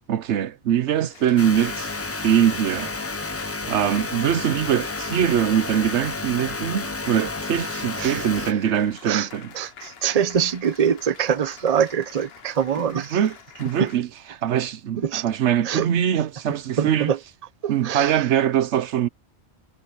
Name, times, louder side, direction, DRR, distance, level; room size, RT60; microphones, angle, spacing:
voice 1, 0.1-2.0 2.2-2.9 3.7-9.5 13.1-13.3 13.6-17.1 17.7-19.1, right 9 dB, 75° right, 1.0 m, -22 dB
Applause, 1.1-14.0, left 7 dB, 60° left, 1.2 m, -45 dB
sound 1, 1.4-8.5, left 3 dB, 20° left, 0.4 m, -31 dB
voice 2, 8.0-8.5 9.0-9.3 9.5-13.2 13.8-13.9 15.0-15.2 15.6-15.9 16.8-17.2 17.6-18.3, right 8 dB, 40° right, 0.8 m, -24 dB
omnidirectional pair, 1.2 m